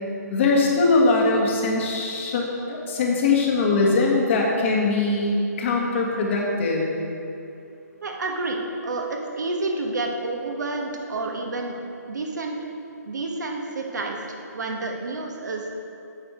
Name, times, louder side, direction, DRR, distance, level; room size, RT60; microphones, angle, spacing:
voice 1, 0.3-6.9, left 3 dB, 45° left, -1 dB, 1.6 m, -21 dB
voice 2, 8.0-11.8 12.1-12.5 13.0-15.8, right 2 dB, 80° right, 1 dB, 1.4 m, -29 dB
8.8 x 6.1 x 5.1 m, 2.6 s
hypercardioid pair, 155°, 9 cm